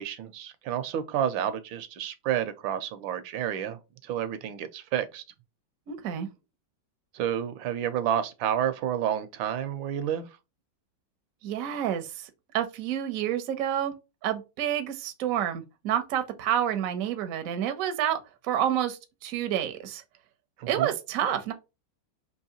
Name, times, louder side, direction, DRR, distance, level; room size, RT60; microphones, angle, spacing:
voice 1, 0.0-5.2 7.1-10.3 20.6-20.9, right 10 dB, 80° right, 1.3 m, -30 dB
voice 2, 5.9-6.3 11.4-12.2 12.5-14.0 14.2-20.0 20.7-21.5, right 10 dB, 65° right, 0.8 m, -29 dB
4.6 x 2.8 x 2.8 m
omnidirectional pair, 2.2 m